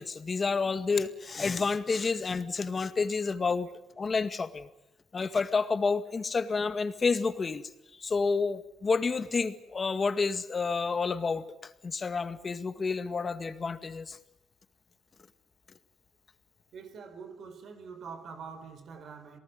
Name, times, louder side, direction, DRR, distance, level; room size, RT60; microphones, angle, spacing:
voice 1, 0.0-3.7 4.0-4.7 5.1-7.7 8.0-11.5 11.8-14.2, left 4 dB, 35° left, 1.9 m, -29 dB
voice 2, 16.7-19.4, right 5 dB, 65° right, 4.5 m, -45 dB
28.0 x 18.5 x 9.8 m
cardioid pair, 90°, 0 cm